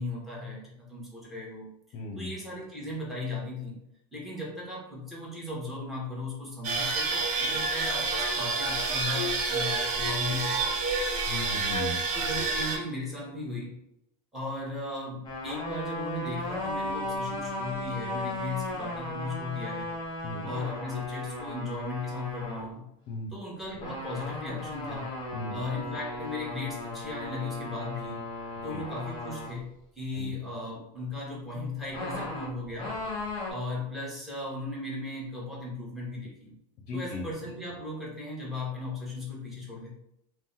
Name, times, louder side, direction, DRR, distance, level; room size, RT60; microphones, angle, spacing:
voice 1, 0.0-1.7 2.1-3.8 4.1-10.9 12.1-13.8 14.3-19.9 20.4-22.8 23.3-25.1 25.5-28.2 28.6-29.7 30.0-32.9 33.5-36.5 36.9-39.9, left 2 dB, ahead, -4 dB, 1.1 m, -36 dB
voice 2, 1.9-2.3 11.3-12.0 20.2-20.5 23.1-23.3 25.3-25.6 28.7-28.8 30.1-30.3 36.9-37.2, left 2 dB, 45° left, 1 dB, 0.7 m, -36 dB
sound 1, 6.6-12.8, right 3 dB, 35° right, 0.7 m, -28 dB
sound 2, 15.2-22.6 23.8-29.5 31.9-33.5, left 2 dB, 20° left, 1.2 m, -36 dB
2.6 x 2.2 x 3.9 m, 0.78 s
supercardioid pair, 125°, 21 cm